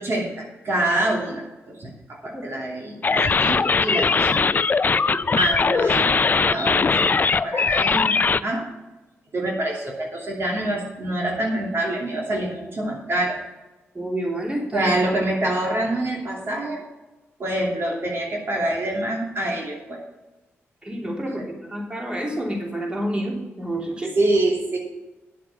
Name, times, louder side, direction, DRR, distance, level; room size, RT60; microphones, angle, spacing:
voice 1, 0.0-4.4 5.3-8.7 9.3-13.4 14.7-16.8 17.4-20.0 21.4-21.5 24.1-24.8, right 1 dB, 55° right, -1 dB, 2.8 m, -26 dB
sound 1, 3.0-8.4, left 4 dB, 40° left, 0.4 m, -20 dB
voice 2, 13.9-14.9 20.8-24.1, right 1 dB, 20° right, 0 dB, 3.1 m, -28 dB
10.5 x 7.5 x 5.7 m, 1.1 s
cardioid pair, 65°, 5 cm